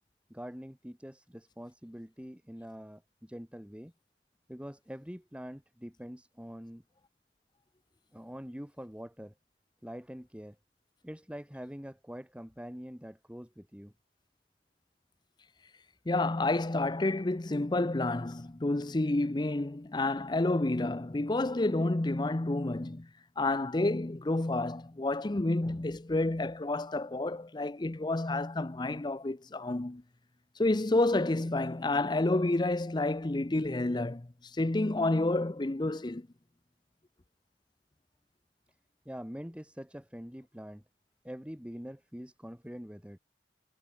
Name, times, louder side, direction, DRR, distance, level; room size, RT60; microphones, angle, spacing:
voice 1, 0.3-3.9 4.5-6.8 8.1-9.3 9.8-10.6 11.0-13.9 39.1-40.8 41.2-43.2, equal, 5° right, 2.1 m, -44 dB
voice 2, 16.1-23.1 23.4-30.0 30.6-36.3, left 2 dB, 25° left, 0.6 m, -29 dB
head